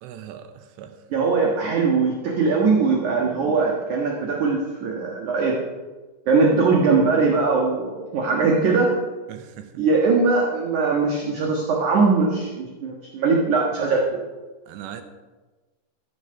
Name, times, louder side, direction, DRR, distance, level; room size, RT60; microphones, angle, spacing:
voice 1, 0.0-1.0 9.3-9.8 13.8-13.9 14.7-15.0, right 10 dB, 80° right, 8 dB, 2.8 m, -39 dB
voice 2, 1.1-5.6 6.3-8.9 9.8-14.0, right 4 dB, 60° right, -1 dB, 2.1 m, -21 dB
14.0 x 9.1 x 5.7 m, 1.3 s
omnidirectional pair, 5.4 m